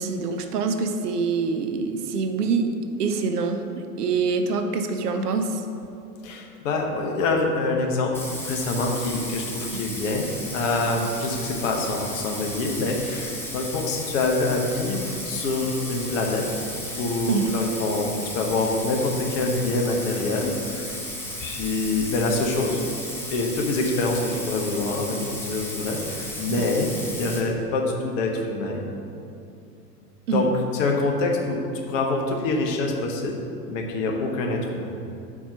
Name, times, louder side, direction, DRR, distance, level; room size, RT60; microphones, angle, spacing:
voice 1, 0.0-2.7 3.0-5.6 17.3-17.5 26.5-26.6 30.3-30.5, right 4 dB, 70° right, 6 dB, 0.7 m, -25 dB
voice 2, 6.2-8.1 8.4-10.2 10.5-16.4 17.0-20.9 21.4-22.8 23.3-28.8 30.3-30.5 30.7-31.6 31.9-33.3 33.7-34.9, left 2 dB, 50° left, 0 dB, 1.1 m, -25 dB
Bathtub (filling or washing), 8.1-27.4, left 1 dB, 5° left, 0.7 m, -35 dB
4.5 x 4.3 x 5.7 m, 2.6 s
figure-of-eight pair, 90°, 48 cm